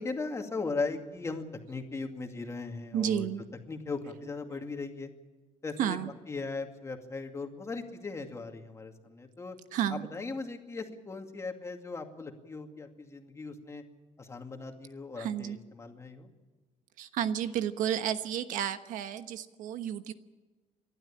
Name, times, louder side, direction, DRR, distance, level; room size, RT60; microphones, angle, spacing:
voice 1, 0.0-3.3 3.7-5.1 5.6-6.0 6.3-9.6 9.9-13.8 14.2-16.3, left 3 dB, 20° left, 4 dB, 2.3 m, -38 dB
voice 2, 2.9-3.4 5.8-6.1 9.7-10.1 15.2-15.6 17.0-20.1, right 9 dB, 80° right, 10 dB, 1.2 m, -31 dB
29.5 x 12.5 x 8.7 m, 1.3 s
cardioid pair, 140°, 13 cm